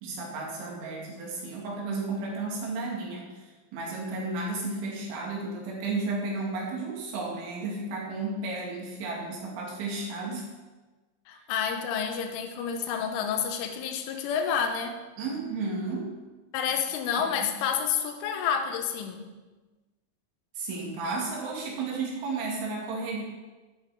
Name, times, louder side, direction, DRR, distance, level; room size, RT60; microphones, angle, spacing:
voice 1, 0.0-10.5 15.2-16.1 17.2-17.6 20.6-23.2, right 3 dB, 70° right, -2 dB, 4.9 m, -33 dB
voice 2, 11.3-15.0 16.5-19.3, left 7 dB, 80° left, 5 dB, 3.5 m, -29 dB
12.5 x 11.0 x 5.2 m, 1.2 s
omnidirectional pair, 5.7 m